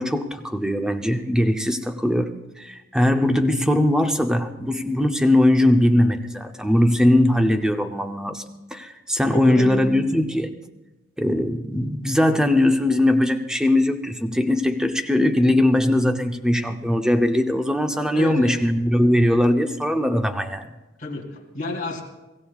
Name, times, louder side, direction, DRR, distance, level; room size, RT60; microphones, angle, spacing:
voice 1, 0.0-2.3 2.6-8.4 8.7-10.5 11.2-20.7, left 1 dB, 5° right, 6 dB, 0.7 m, -20 dB
voice 2, 9.3-10.0 18.1-18.6 21.0-22.0, left 2 dB, 40° left, 0 dB, 2.8 m, -30 dB
23.5 x 16.0 x 2.4 m, 1.1 s
head